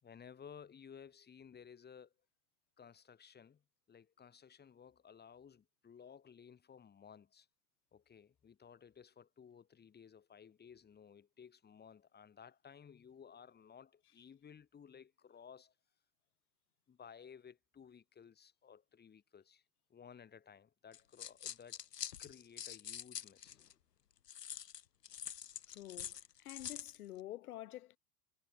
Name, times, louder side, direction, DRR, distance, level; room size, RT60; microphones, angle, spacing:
voice 1, 0.0-2.1 2.8-7.5 7.9-15.7 16.9-19.6 19.9-21.8 22.2-23.6, left 7 dB, 20° left, 4.8 m, -57 dB
sound 1, 20.9-23.7 24.3-27.0, left 9 dB, 90° left, 1.2 m, -46 dB
voice 2, 25.7-28.0, left 14 dB, 65° left, 2.9 m, -49 dB
hypercardioid pair, 105°, 47 cm